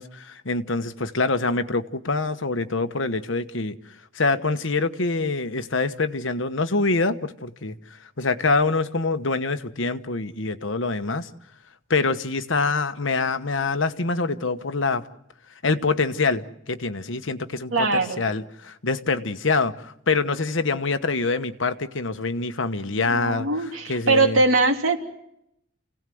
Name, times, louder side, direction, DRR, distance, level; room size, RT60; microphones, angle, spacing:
voice 1, 0.0-3.8 4.1-11.3 11.9-15.1 15.6-24.4, left 3 dB, 65° left, 10 dB, 1.2 m, -25 dB
voice 2, 17.7-18.2 23.0-25.0, right 3 dB, 80° right, 3 dB, 3.1 m, -21 dB
29.0 x 17.5 x 7.8 m, 0.79 s
head